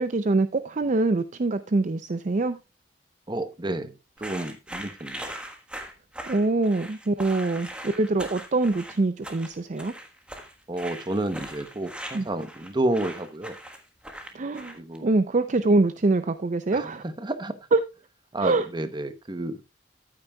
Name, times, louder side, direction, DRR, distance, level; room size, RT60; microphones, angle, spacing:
voice 1, 0.0-2.6 6.3-9.9 12.1-12.2 14.3-14.8 15.0-17.0 17.7-17.8 18.4-18.7, right 3 dB, 40° right, 0.5 m, -24 dB
voice 2, 3.3-5.4 10.7-13.5 14.7-15.1 16.7-17.5 18.3-19.6, right 1 dB, 25° right, 0.9 m, -30 dB
sound 1, 4.2-15.0, right 1 dB, 5° right, 1.4 m, -40 dB
13.5 x 8.8 x 2.3 m
head